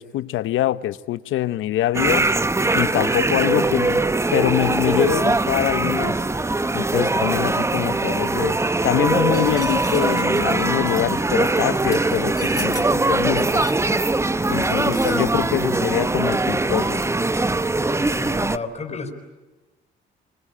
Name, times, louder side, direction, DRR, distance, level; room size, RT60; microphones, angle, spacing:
voice 1, 0.0-2.3 2.7-4.0 4.3-6.2 6.7-8.6 8.8-13.6 14.5-17.0, left 14 dB, 85° left, 0.9 m, -24 dB
sound 1, 1.9-18.6, right 2 dB, 15° right, 0.9 m, -21 dB
sound 2, 9.3-15.7, left 2 dB, 15° left, 4.5 m, -39 dB
voice 2, 17.7-19.1, left 4 dB, 35° left, 5.1 m, -33 dB
27.0 x 24.0 x 8.7 m
cardioid pair, 90°, 20 cm